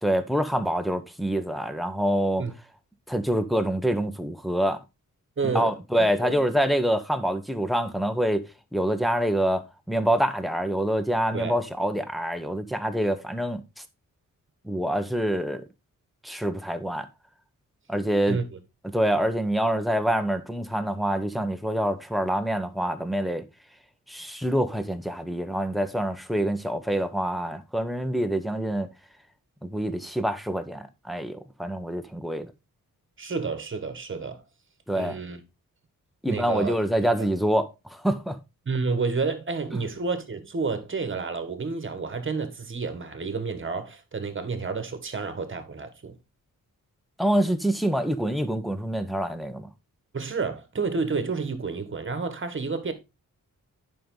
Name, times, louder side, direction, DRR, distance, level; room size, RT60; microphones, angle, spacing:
voice 1, 0.0-2.4 3.1-4.8 5.4-13.6 14.6-15.6 16.2-17.1 17.9-18.4 18.9-23.5 24.1-28.9 29.6-32.5 34.9-35.2 36.2-38.4 47.2-49.7, equal, ahead, 1.0 m, -26 dB
voice 2, 5.4-5.7 6.2-6.4 11.3-11.6 18.3-18.6 33.2-34.4 34.9-35.4 36.3-36.8 37.2-37.3 38.6-46.2 50.1-52.9, right 4 dB, 35° right, 1.5 m, -30 dB
10.0 x 5.4 x 3.8 m
wide cardioid pair, 120°, 34 cm